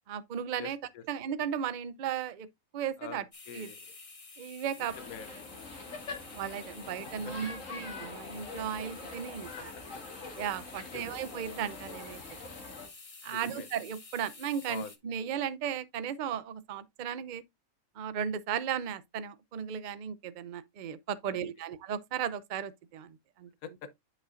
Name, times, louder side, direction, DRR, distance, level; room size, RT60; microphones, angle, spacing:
voice 1, 0.1-0.8 1.1-2.5 2.7-3.2 3.5-3.7 4.4-4.9 6.3-9.7 10.4-12.2 13.2-17.4 18.0-23.5, right 8 dB, 50° right, 0.5 m, -35 dB
voice 2, 0.6-1.0 3.0-3.8 4.8-5.4 9.6-9.7 10.9-11.2 13.3-13.7 14.7-14.9 21.2-21.4 23.6-23.9, left 7 dB, 75° left, 1.3 m, -45 dB
sound 1, 3.3-15.0, left 3 dB, 25° left, 1.0 m, -51 dB
sound 2, 4.8-12.9, left 3 dB, 60° left, 2.2 m, -44 dB
9.6 x 5.3 x 2.5 m
omnidirectional pair, 1.5 m